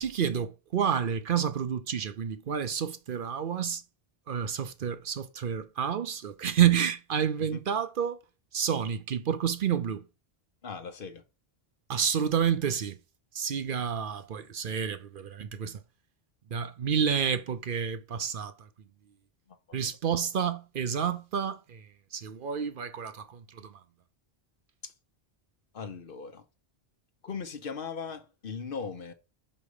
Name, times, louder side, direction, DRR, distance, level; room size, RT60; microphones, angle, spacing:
voice 1, 0.0-3.8 4.3-8.2 8.5-10.0 11.9-13.0 13.3-15.8 16.5-18.5 19.7-21.8 22.1-23.2, right 8 dB, 60° right, 0.8 m, -29 dB
voice 2, 10.6-11.2 19.5-19.6 19.8-20.0 24.8-24.9 25.7-26.4 27.2-29.1, left 5 dB, 60° left, 1.0 m, -39 dB
5.3 x 5.3 x 4.8 m
omnidirectional pair, 1.1 m